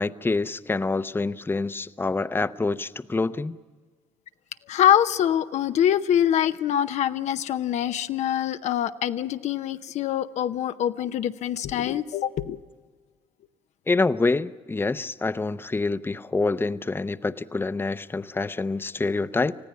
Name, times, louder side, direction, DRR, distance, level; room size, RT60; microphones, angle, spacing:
voice 1, 0.0-3.6 13.9-19.5, left 3 dB, 20° left, 13 dB, 0.7 m, -26 dB
voice 2, 4.7-12.6, left 10 dB, 70° left, 10 dB, 0.7 m, -24 dB
20.5 x 15.0 x 9.9 m, 1.4 s
supercardioid pair, 65°, 12 cm